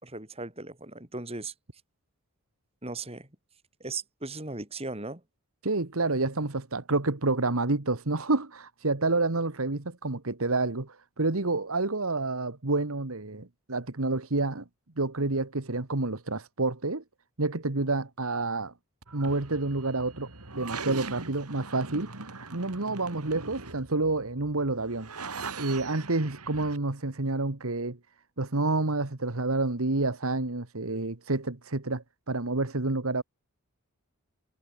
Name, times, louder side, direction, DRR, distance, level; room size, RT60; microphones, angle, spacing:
voice 1, 0.0-1.5 2.8-3.3 3.8-5.2, right 3 dB, 25° right, 3.5 m, -37 dB
voice 2, 5.6-14.6 15.0-17.0 17.4-18.7 19.1-22.1 22.5-25.1 25.6-28.0 28.4-33.2, right 2 dB, 70° right, 1.6 m, -29 dB
sound 1, 19.0-26.8, right 4 dB, 90° right, 3.6 m, -41 dB
head